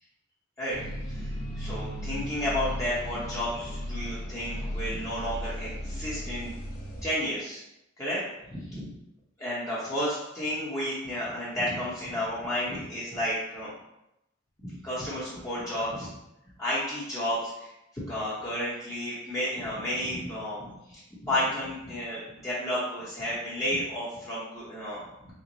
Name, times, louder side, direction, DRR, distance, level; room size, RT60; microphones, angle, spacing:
sound 1, 0.7-7.0, equal, 45° left, 0.8 m, -36 dB
voice 1, 1.1-6.5 7.0-7.6 8.0-8.2 8.5-8.9 9.4-13.7 14.6-16.1 16.6-25.3, left 1 dB, 15° left, -10 dB, 0.8 m, -32 dB
4.6 x 2.1 x 3.9 m, 0.87 s
head